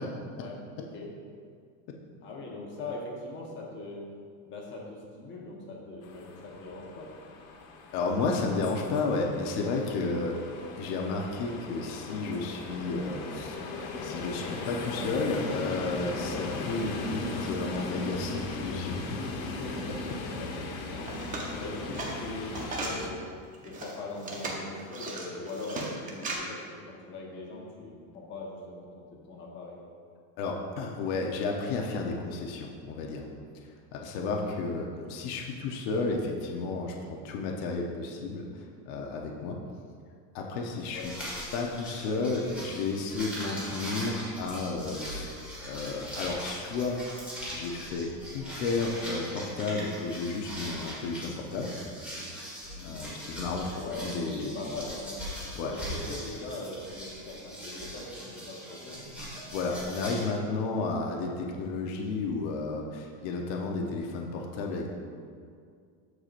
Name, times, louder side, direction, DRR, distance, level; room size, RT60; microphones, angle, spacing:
voice 1, 0.4-1.1 2.2-4.0 4.5-7.1 19.5-19.9 20.4-23.2 23.6-29.8 34.5-34.6 40.9-41.1 52.8-53.0 53.8-54.1 54.4-55.2 55.6-59.0, left 2 dB, 30° left, -2 dB, 1.2 m, -41 dB
sound 1, 6.0-23.1, left 3 dB, 80° left, 1.4 m, -38 dB
voice 2, 7.9-10.4 10.8-13.6 14.0-19.3 19.9-20.0 30.4-33.3 33.9-38.5 38.8-39.6 40.3-41.1 41.5-45.3 45.6-47.0 47.5-51.7 52.8-54.5 55.5-55.7 59.5-64.9, left 3 dB, 50° left, 0 dB, 1.0 m, -32 dB
sound 2, 21.0-23.0 23.5-26.4, right 2 dB, 20° right, 0.7 m, -37 dB
sound 3, 40.8-60.3, equal, 5° right, 1.8 m, -41 dB
14.0 x 4.8 x 2.6 m, 2.2 s
cardioid pair, 165°, 41 cm